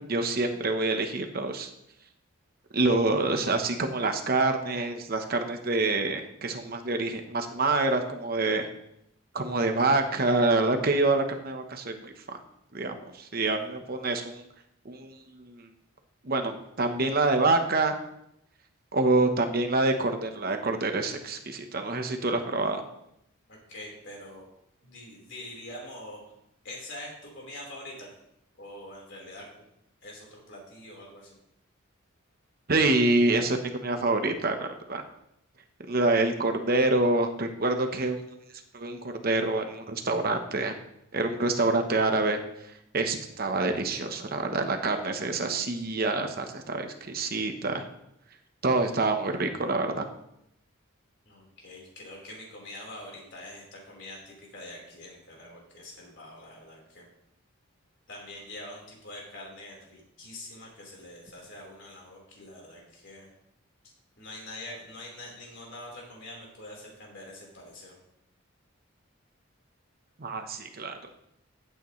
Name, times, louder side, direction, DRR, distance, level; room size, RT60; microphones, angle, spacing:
voice 1, 0.1-1.7 2.7-8.7 9.3-12.4 12.7-14.4 14.8-15.7 16.2-17.9 18.9-22.8 32.7-35.0 35.9-38.2 38.7-40.7 41.1-42.4 42.9-47.9 48.6-50.1 70.2-71.0, right 2 dB, 45° right, 6 dB, 1.0 m, -26 dB
voice 2, 23.5-24.5 24.8-26.3 26.6-28.1 28.6-29.5 30.0-31.4 51.2-57.0 58.1-63.3 64.2-67.9, left 1 dB, 55° left, -2 dB, 4.2 m, -44 dB
15.5 x 8.9 x 3.2 m, 0.78 s
head